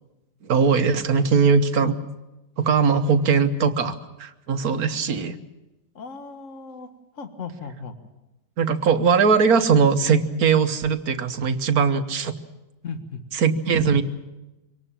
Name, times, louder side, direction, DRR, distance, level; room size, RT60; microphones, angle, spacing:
voice 1, 0.4-2.0 2.6-5.3 8.6-12.3 13.3-14.0, right 5 dB, 65° right, 9 dB, 1.6 m, -20 dB
voice 2, 6.0-6.9 7.2-7.9 12.8-13.2, left 4 dB, 50° left, 7 dB, 1.9 m, -36 dB
24.5 x 18.5 x 7.3 m, 0.99 s
omnidirectional pair, 1.8 m